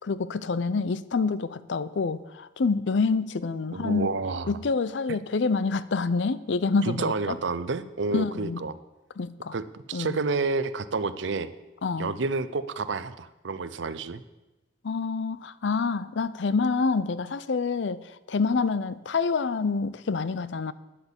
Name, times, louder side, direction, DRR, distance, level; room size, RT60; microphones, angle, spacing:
voice 1, 0.0-4.1 4.5-7.4 8.1-8.6 9.2-9.6 9.9-10.2 11.8-12.2 14.8-18.0 18.3-20.7, left 4 dB, 70° left, 0.5 m, -27 dB
voice 2, 3.7-4.5 6.8-8.8 9.5-11.5 12.0-14.2, right 4 dB, 75° right, 0.6 m, -29 dB
10.0 x 8.1 x 7.1 m
head